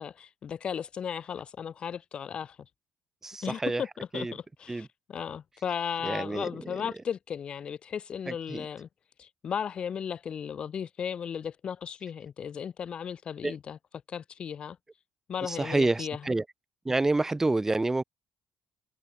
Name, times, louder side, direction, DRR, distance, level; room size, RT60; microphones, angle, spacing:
voice 1, 0.0-2.6 3.4-8.9 9.2-13.8 14.1-14.8 15.3-16.2, left 7 dB, 50° left, 1.7 m, -35 dB
voice 2, 3.2-3.8 4.1-4.3 4.7-4.9 6.0-6.8 8.3-8.7 13.4-13.6 15.4-16.4 16.8-18.0, right 2 dB, 20° right, 3.3 m, -28 dB
hypercardioid pair, 50°, 2 cm